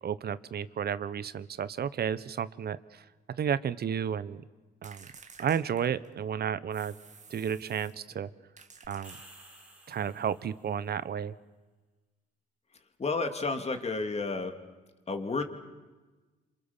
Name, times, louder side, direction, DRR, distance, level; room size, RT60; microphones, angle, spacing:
voice 1, 0.0-3.0 3.4-4.4 4.8-5.1 5.4-6.9 7.3-8.3 8.9-9.2 9.9-11.3, right 8 dB, 55° right, 16 dB, 1.0 m, -32 dB
sound 1, 4.8-6.3 6.7-8.0 8.6-9.7, right 5 dB, 35° right, 2.0 m, -53 dB
sound 2, 8.8-10.8, right 1 dB, 5° right, 4.0 m, -53 dB
voice 2, 13.0-14.5 15.1-15.4, left 3 dB, 30° left, 6 dB, 2.7 m, -31 dB
27.0 x 26.5 x 7.3 m, 1.2 s
cardioid pair, 90°, 20 cm